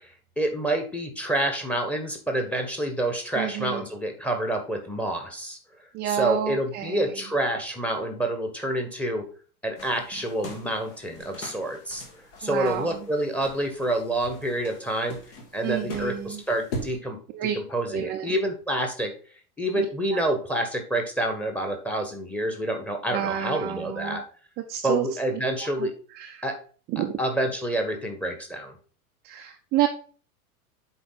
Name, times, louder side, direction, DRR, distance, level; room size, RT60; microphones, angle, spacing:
voice 1, 0.4-5.6 6.0-9.3 9.6-12.0 12.4-15.2 15.5-19.1 19.6-24.2 24.8-25.9 26.4-26.6 27.2-28.7, right 1 dB, 5° left, 5 dB, 1.4 m, -28 dB
voice 2, 3.3-3.9 5.9-7.1 12.4-13.1 15.6-16.4 17.3-17.6 17.9-18.3 19.8-19.9 20.1-20.2 23.1-24.2 24.7-25.1 25.6-25.9 26.1-26.5 26.9-27.1 29.2-29.9, right 11 dB, 25° right, 4 dB, 0.6 m, -29 dB
sound 1, 9.8-17.0, left 1 dB, 50° left, 2.3 m, -41 dB
7.6 x 4.8 x 4.0 m, 0.40 s
figure-of-eight pair, 90°, 45 cm